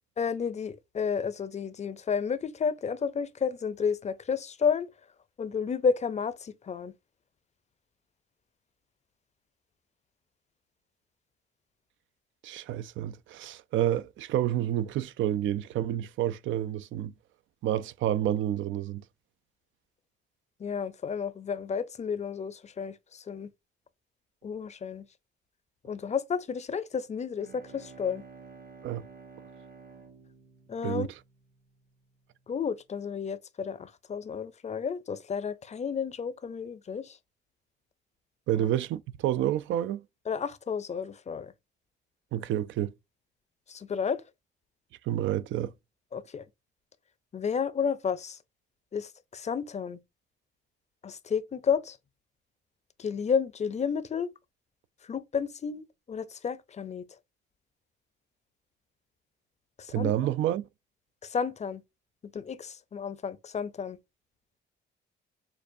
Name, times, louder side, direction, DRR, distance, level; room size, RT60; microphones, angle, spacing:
voice 1, 0.2-4.9 5.4-6.9 20.6-23.5 24.4-25.1 25.8-28.2 30.7-31.1 32.5-37.2 40.3-41.5 43.7-44.2 46.1-46.4 47.3-48.4 48.9-50.0 51.0-52.0 53.0-54.3 55.1-57.1 59.8-60.1 61.2-61.8 62.3-64.0, left 6 dB, 35° left, 0.5 m, -31 dB
voice 2, 12.4-17.1 17.6-19.0 28.8-29.0 30.8-31.2 38.5-40.0 42.3-42.9 45.1-45.7 59.9-60.7, right 12 dB, 75° right, 0.4 m, -29 dB
Bowed string instrument, 27.2-31.9, right 5 dB, 50° right, 1.1 m, -51 dB
6.6 x 2.4 x 2.6 m
cardioid pair, 90°, 20 cm